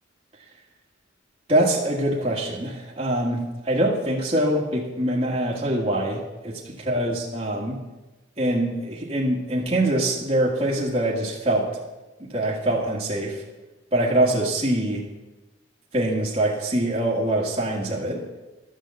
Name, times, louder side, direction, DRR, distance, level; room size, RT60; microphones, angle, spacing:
voice 1, 1.5-7.8 8.4-11.7 12.3-13.4 13.9-15.1 15.9-18.2, right 1 dB, 30° right, -5 dB, 1.7 m, -24 dB
12.0 x 6.5 x 7.7 m, 1.1 s
head